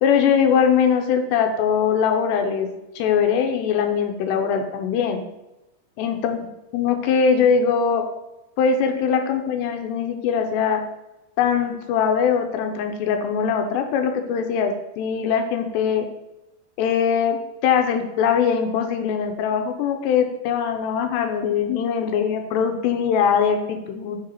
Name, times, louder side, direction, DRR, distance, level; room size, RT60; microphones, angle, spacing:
voice 1, 0.0-5.2 6.0-6.4 6.7-8.1 8.6-10.8 11.4-16.1 16.8-24.2, left 7 dB, 90° left, 5 dB, 2.8 m, -21 dB
6.1 x 4.8 x 4.5 m, 0.97 s
omnidirectional pair, 4.9 m